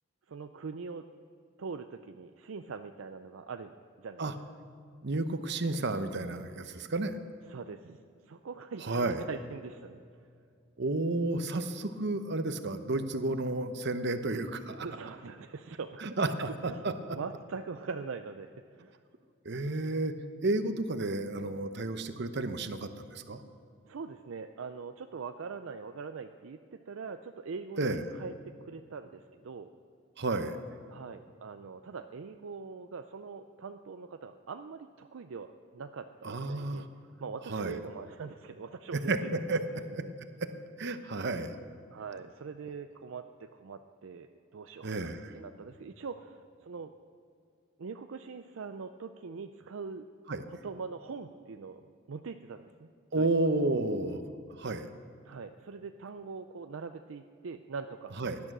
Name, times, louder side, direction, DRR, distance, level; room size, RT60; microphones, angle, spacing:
voice 1, 0.3-1.0 1.6-3.7 4.0-4.3 7.5-8.0 8.3-10.0 14.8-16.1 16.6-16.8 17.1-19.0 23.8-29.7 30.9-36.9 37.2-39.3 39.7-40.1 41.9-46.9 47.8-50.0 50.5-52.9 53.2-53.3 55.2-58.2, right 5 dB, 70° right, 8 dB, 0.5 m, -42 dB
voice 2, 5.0-7.2 8.8-9.3 10.8-14.9 16.0-17.2 19.4-20.1 20.4-23.4 27.8-28.0 30.2-30.6 36.2-36.9 37.5-37.8 38.9-39.6 39.9-40.0 40.4-40.5 40.8-41.5 44.8-45.3 50.3-50.4 53.1-54.2 54.6-54.9 58.2-58.4, right 2 dB, 55° right, 9 dB, 0.9 m, -31 dB
17.5 x 11.5 x 6.1 m, 2.3 s
head